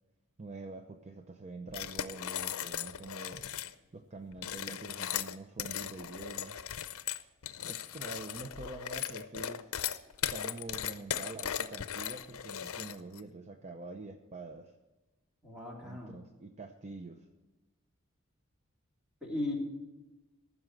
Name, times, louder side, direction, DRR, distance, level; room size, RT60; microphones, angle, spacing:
voice 1, 0.4-3.4 3.9-6.6 7.7-9.7 10.3-14.7 15.8-17.3, right 3 dB, 30° right, 6 dB, 0.6 m, -46 dB
sound 1, 1.7-3.7 4.3-13.2, left 10 dB, 80° left, 0.6 m, -38 dB
voice 2, 15.4-16.2 19.2-19.6, left 2 dB, 5° right, -2 dB, 2.9 m, -37 dB
14.5 x 6.3 x 7.6 m, 1.1 s
head